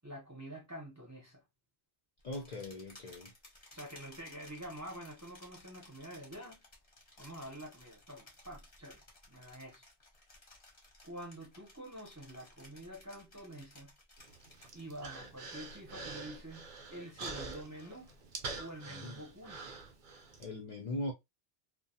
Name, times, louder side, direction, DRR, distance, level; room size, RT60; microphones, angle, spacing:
voice 1, 0.0-1.4 3.7-6.6 7.2-9.0 9.3-9.8 11.0-13.9 14.7-18.1 18.6-19.8, right 1 dB, 20° right, 0.6 m, -47 dB
voice 2, 2.2-3.3 18.9-19.2 20.4-21.1, left 1 dB, 55° left, 0.5 m, -40 dB
sound 1, 2.2-15.1 15.5-15.9 16.3-18.2, left 1 dB, 35° left, 0.9 m, -58 dB
Human voice, 14.2-20.4, right 4 dB, 55° right, 0.7 m, -46 dB
2.4 x 2.2 x 2.6 m
omnidirectional pair, 1.1 m